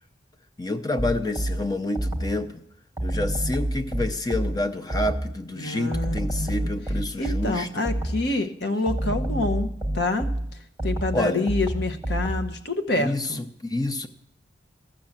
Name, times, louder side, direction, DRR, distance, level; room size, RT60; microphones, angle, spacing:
voice 1, 0.6-2.6 3.0-7.8 11.1-11.5 13.0-14.1, left 2 dB, 20° left, 9 dB, 0.6 m, -28 dB
sound 1, 1.0-2.5 3.0-5.4 5.9-8.4 8.9-12.6, right 1 dB, 10° right, 1.0 m, -29 dB
voice 2, 5.6-6.7 7.2-9.7 9.9-10.3 10.8-13.4, left 2 dB, 60° left, 7 dB, 1.0 m, -27 dB
14.0 x 6.5 x 7.3 m, 0.74 s
head